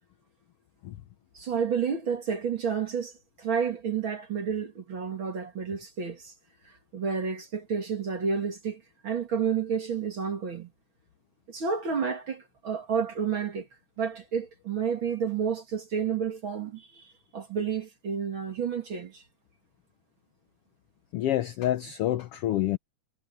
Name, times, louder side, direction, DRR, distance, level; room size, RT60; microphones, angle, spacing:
voice 1, 1.3-3.1 3.4-6.3 6.6-10.7 11.5-13.7 14.0-19.2, right 6 dB, 45° right, 2.6 m, -30 dB
voice 2, 21.1-22.8, left 13 dB, 80° left, 1.3 m, -27 dB
omnidirectional pair, 3.5 m